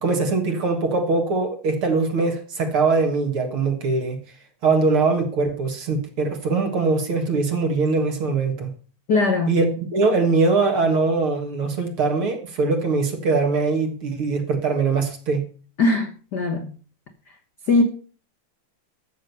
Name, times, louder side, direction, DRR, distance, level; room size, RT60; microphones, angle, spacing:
voice 1, 0.0-4.2 4.6-8.7 9.5-15.4, right 3 dB, 50° right, 2.1 m, -22 dB
voice 2, 9.1-9.6 15.8-16.7 17.7-17.8, left 3 dB, 60° left, 1.0 m, -20 dB
14.5 x 6.4 x 6.8 m
omnidirectional pair, 3.7 m